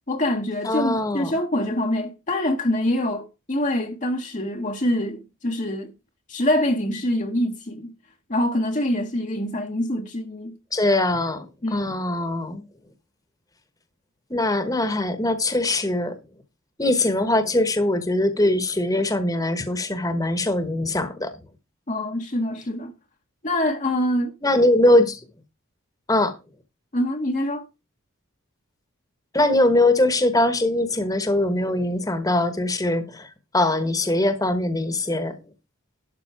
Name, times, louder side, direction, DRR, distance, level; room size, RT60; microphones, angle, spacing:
voice 1, 0.1-5.9 6.3-7.9 8.3-10.5 11.6-11.9 21.9-22.9 23.4-24.3 26.9-27.7, left 1 dB, 35° left, 1.0 m, -25 dB
voice 2, 0.6-1.3 10.7-11.4 11.7-12.6 14.3-16.2 16.8-21.3 24.4-25.2 26.1-26.4 29.3-35.4, left 1 dB, 15° left, 1.2 m, -22 dB
12.0 x 6.1 x 4.7 m
head